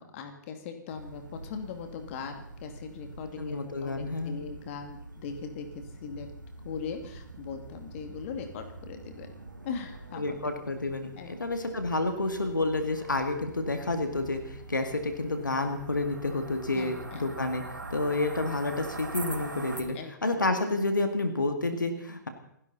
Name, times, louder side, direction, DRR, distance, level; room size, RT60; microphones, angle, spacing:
voice 1, 0.0-6.3 6.6-9.3 9.6-10.4 11.2-11.4 16.7-17.4 17.9-18.1 19.9-20.5, left 6 dB, 45° left, 6 dB, 2.4 m, -40 dB
sound 1, 0.9-19.8, right 2 dB, 80° right, 2.3 m, -44 dB
voice 2, 3.4-4.4 10.2-17.6 17.9-22.3, left 2 dB, 80° left, 6 dB, 2.2 m, -30 dB
29.0 x 11.0 x 4.2 m, 0.72 s
figure-of-eight pair, 110°, 10 cm